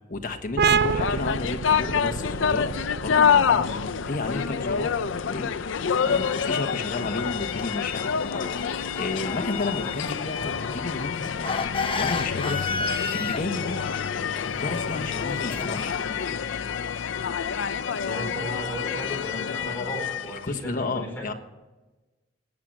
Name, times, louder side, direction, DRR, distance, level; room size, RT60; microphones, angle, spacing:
voice 1, 0.1-2.7 3.0-3.7 4.1-5.0 5.2-5.5 6.0-8.1 8.6-11.4 12.0-13.8 14.6-16.2 20.3-21.3, left 2 dB, 45° left, 5 dB, 1.3 m, -32 dB
sound 1, 0.6-7.9, right 6 dB, 55° right, 0.4 m, -30 dB
sound 2, 0.7-20.5, left 7 dB, 80° left, 0.5 m, -27 dB
sound 3, 6.0-15.9, left 3 dB, 30° left, 0.9 m, -34 dB
voice 2, 18.0-21.2, equal, 10° left, -2 dB, 4.8 m, -35 dB
19.5 x 7.6 x 6.5 m, 1.1 s
head